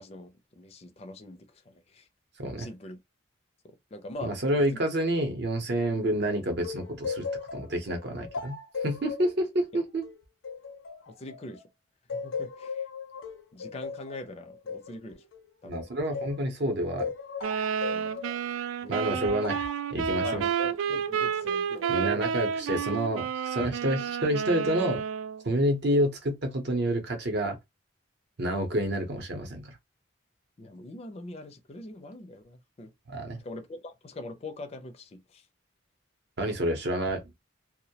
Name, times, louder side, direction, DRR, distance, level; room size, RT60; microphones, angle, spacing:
voice 1, 0.0-2.1 2.6-3.0 3.6-4.6 11.1-11.6 12.1-12.9 13.5-15.3 15.6-15.9 17.9-18.2 18.8-19.5 20.2-22.3 30.6-32.9 33.4-35.5, left 2 dB, 30° left, 0.4 m, -43 dB
voice 2, 4.2-7.3 7.5-10.1 15.6-17.1 18.9-19.6 19.9-20.4 21.9-25.0 25.4-27.6 28.4-29.8 33.1-33.4 36.4-37.2, right 1 dB, 55° right, 0.7 m, -28 dB
sound 1, 6.6-11.7 12.1-16.4 17.0-18.4 19.4-19.9, left 5 dB, 85° left, 0.5 m, -37 dB
sound 2, 17.4-25.4, right 7 dB, 85° right, 0.3 m, -30 dB
2.2 x 2.0 x 2.7 m
head